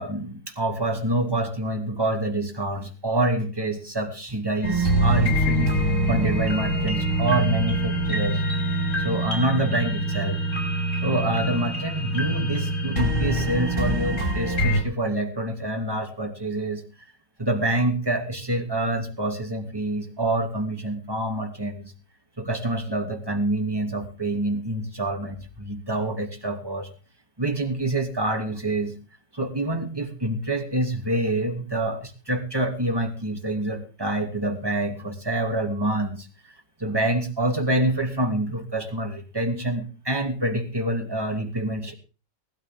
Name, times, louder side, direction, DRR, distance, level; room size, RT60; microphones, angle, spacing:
voice 1, 0.0-8.4 9.0-10.6 11.0-16.8 17.4-21.9 22.4-26.9 27.4-28.9 29.3-36.5 36.8-41.9, right 1 dB, 15° right, 4 dB, 2.7 m, -27 dB
sound 1, 4.6-14.8, right 1 dB, 30° left, 5.7 m, -24 dB
19.5 x 13.0 x 3.8 m, 0.35 s
omnidirectional pair, 1.9 m